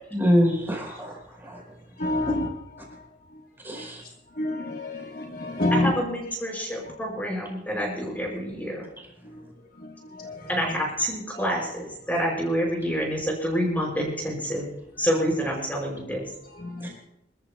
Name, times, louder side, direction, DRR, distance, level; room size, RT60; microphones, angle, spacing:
voice 1, 0.1-1.6 3.6-4.0 16.8-17.0, equal, 10° right, -1 dB, 4.6 m, -25 dB
voice 2, 2.0-3.0 3.7-3.9 4.4-6.1 9.2-9.4 9.8-10.7 11.3-11.5 12.1-12.2 16.5-17.0, left 2 dB, 50° left, 1 dB, 1.3 m, -29 dB
voice 3, 5.7-8.9 10.5-14.7 15.0-16.3, equal, 10° left, -1 dB, 5.0 m, -27 dB
27.0 x 14.0 x 2.3 m, 0.81 s
head